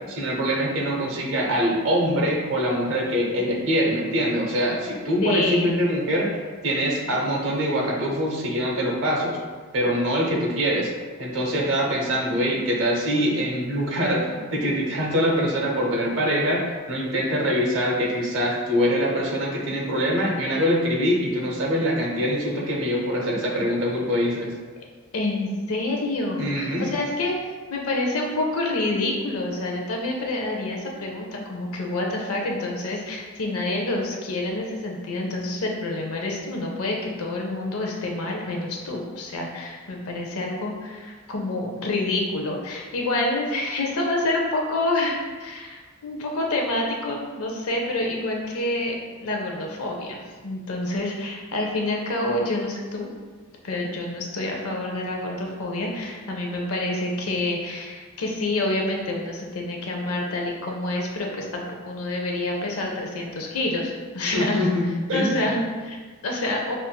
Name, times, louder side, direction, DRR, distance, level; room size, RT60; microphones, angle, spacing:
voice 1, 0.1-9.4 9.7-10.9 11.2-24.5 26.4-26.9 64.3-65.5, equal, 60° right, -3 dB, 0.7 m, -24 dB
voice 2, 5.2-5.8 25.1-27.3 27.7-48.9 49.2-53.1 53.6-64.7 65.1-66.7, left 2 dB, 90° left, 0 dB, 0.6 m, -27 dB
5.5 x 2.5 x 2.2 m, 1.5 s
head